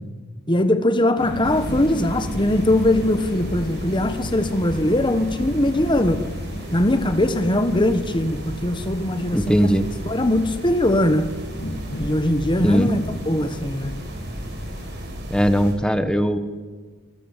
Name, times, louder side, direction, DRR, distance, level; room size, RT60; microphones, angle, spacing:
voice 1, 0.5-6.2 6.7-9.6 10.0-11.3 12.0-14.0, left 1 dB, 20° left, 9 dB, 1.4 m, -21 dB
sound 1, 1.2-15.1, equal, 55° left, 2.6 m, -35 dB
sound 2, 1.4-15.8, equal, 55° right, 5.0 m, -34 dB
voice 2, 9.3-9.9 12.6-12.9 15.3-16.4, equal, 5° left, 9 dB, 1.3 m, -19 dB
26.5 x 20.5 x 7.5 m, 1.5 s
head